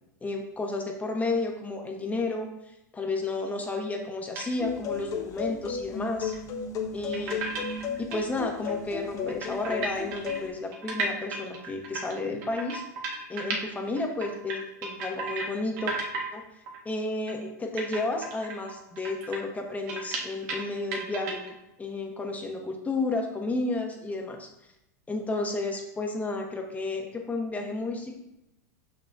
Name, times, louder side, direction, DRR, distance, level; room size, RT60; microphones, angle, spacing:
voice 1, 0.2-2.5 2.9-6.3 6.9-12.8 13.3-15.9 16.3-16.4 16.8-24.5 25.1-28.2, left 2 dB, 15° left, 2 dB, 1.1 m, -32 dB
sound 1, 4.3-4.6 5.0-5.1 6.2-6.4 7.1-8.2 8.7-8.8 9.0-9.1 9.3-13.7 14.0-15.5 15.8-16.3 16.7-16.8 17.3-17.4 17.8-20.7 20.9-21.5, right 3 dB, 60° right, 1.7 m, -34 dB
sound 2, 4.6-10.5, left 6 dB, 35° left, 1.1 m, -34 dB
6.2 x 5.7 x 2.8 m, 0.88 s
hypercardioid pair, 100°, 10 cm